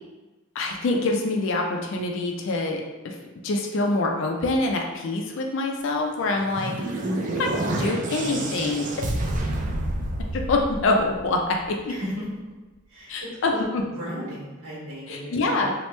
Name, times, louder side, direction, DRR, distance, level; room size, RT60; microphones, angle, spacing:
voice 1, 0.6-3.2 3.4-6.7 7.4-8.9 10.3-11.9 13.1-13.8 15.1-15.7, left 2 dB, 55° left, 2 dB, 0.4 m, -25 dB
sound 1, 6.2-11.5, right 1 dB, 35° right, 0.3 m, -29 dB
voice 2, 7.0-7.3 11.9-12.1 12.9-13.6 14.0-15.6, equal, 80° right, -6 dB, 1.2 m, -34 dB
3.0 x 2.1 x 3.1 m, 1.1 s
head